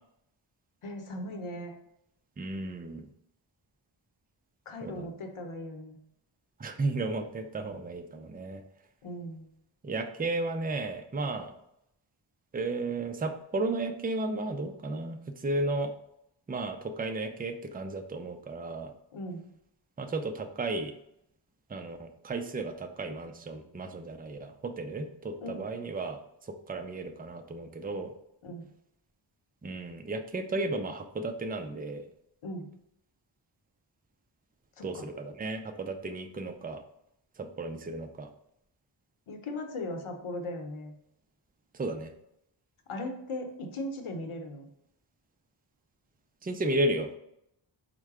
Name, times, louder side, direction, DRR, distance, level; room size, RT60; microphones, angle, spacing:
voice 1, 0.8-1.7 4.7-6.0 9.0-9.5 19.1-19.4 25.4-25.6 28.4-28.6 32.4-32.7 34.8-35.1 39.3-40.9 42.9-44.7, left 1 dB, 80° left, 4 dB, 0.8 m, -38 dB
voice 2, 2.4-3.1 4.8-5.1 6.6-8.6 9.8-11.5 12.5-15.9 16.5-18.9 20.0-20.9 21.7-28.1 29.6-32.0 34.8-36.8 37.4-38.3 41.7-42.1 46.4-47.2, right 2 dB, 20° right, 6 dB, 0.4 m, -34 dB
4.6 x 2.2 x 4.7 m, 0.77 s
wide cardioid pair, 80°, 49 cm